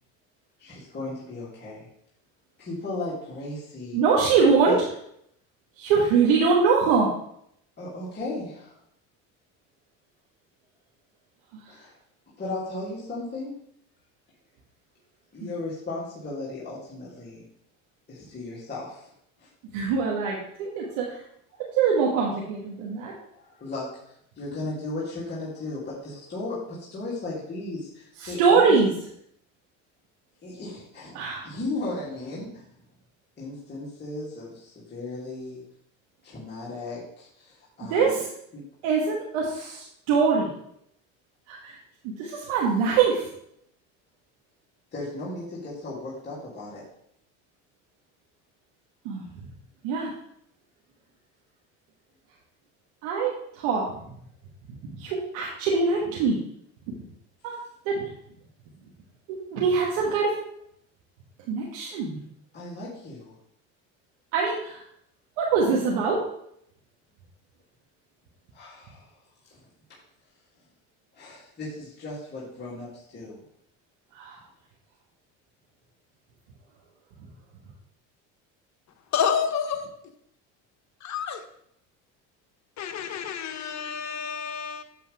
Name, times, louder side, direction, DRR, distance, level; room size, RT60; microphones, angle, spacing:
voice 1, 0.6-1.9 2.6-4.0 4.7-4.8 7.8-8.7 11.7-11.9 12.4-13.5 15.3-17.4 18.1-19.1 19.4-19.5 23.3-23.9 24.4-28.8 30.4-32.6 33.4-35.6 36.2-38.2 38.5-38.6 44.9-46.8 62.5-63.3 68.5-69.1 69.5-69.6 71.1-73.4, left 2 dB, 30° left, -8 dB, 3.2 m, -36 dB
voice 2, 3.9-4.8 5.8-7.1 15.4-15.5 19.7-21.2 21.7-23.1 28.2-28.9 31.1-31.5 37.9-38.3 38.8-40.5 41.5-41.8 42.0-43.3 49.1-49.4 49.8-50.1 53.0-53.8 55.0-56.4 56.9-57.0 57.4-57.5 57.9-58.1 59.3-60.3 61.5-62.2 64.3-64.8 65.4-66.2 74.1-74.4, right 5 dB, 75° right, -3 dB, 1.8 m, -23 dB
voice 3, 79.1-79.9 81.0-81.4 82.8-84.8, left 7 dB, 50° left, 7 dB, 1.3 m, -29 dB
8.4 x 7.3 x 3.6 m, 0.72 s
supercardioid pair, 95°, 36 cm